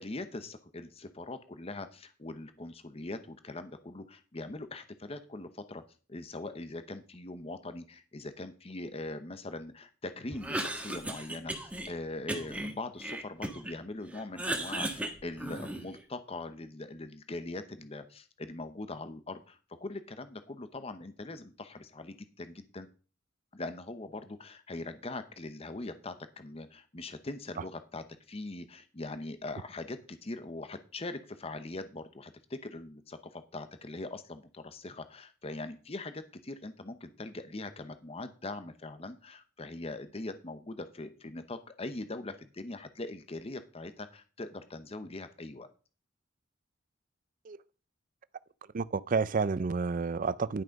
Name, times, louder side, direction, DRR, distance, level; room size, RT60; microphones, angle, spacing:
voice 1, 0.0-5.8 6.1-22.9 23.5-45.7, left 2 dB, 30° left, 0.8 m, -41 dB
Cough, 10.3-11.9 12.3-13.8 14.1-16.0, right 1 dB, 5° right, 1.3 m, -36 dB
voice 2, 48.7-50.6, right 4 dB, 45° right, 0.4 m, -30 dB
11.0 x 6.2 x 5.2 m
head